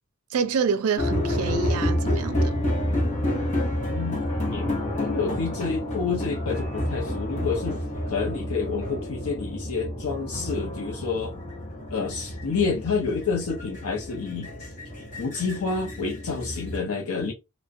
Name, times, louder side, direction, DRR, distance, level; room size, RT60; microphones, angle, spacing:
voice 1, 0.3-2.5, right 6 dB, 85° right, 0.4 m, -27 dB
sound 1, 1.0-16.8, left 1 dB, 35° left, 0.8 m, -29 dB
voice 2, 3.9-4.2 4.5-11.3 11.9-14.7 15.2-17.3, left 5 dB, 75° left, 0.5 m, -29 dB
2.4 x 2.1 x 2.4 m
head